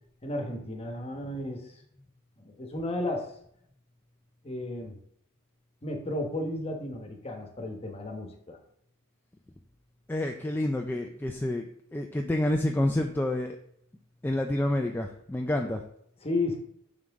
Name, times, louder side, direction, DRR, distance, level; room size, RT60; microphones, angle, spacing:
voice 1, 0.2-1.7 2.4-3.3 4.4-5.0 5.8-8.6 15.6-15.7 16.2-16.6, left 2 dB, 30° left, 2 dB, 1.2 m, -33 dB
voice 2, 10.1-11.7 11.9-13.6 14.2-15.8, left 1 dB, 10° left, 3 dB, 0.4 m, -28 dB
6.3 x 5.7 x 3.6 m, 0.69 s
head